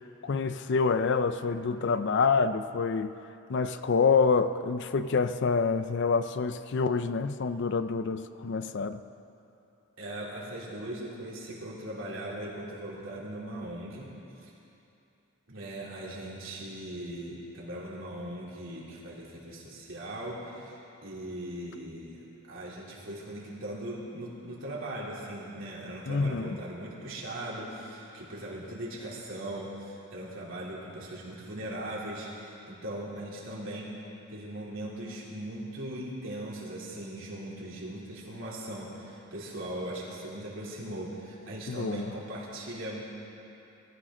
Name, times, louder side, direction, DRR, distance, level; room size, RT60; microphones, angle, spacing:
voice 1, 0.2-3.1 3.5-9.0 26.1-26.6 41.7-42.1, left 5 dB, 50° left, 11 dB, 0.4 m, -27 dB
voice 2, 10.0-14.1 14.4-14.5 15.5-33.9 34.3-43.0, right 1 dB, 60° right, -5 dB, 3.2 m, -39 dB
22.0 x 14.5 x 3.8 m, 2.8 s
head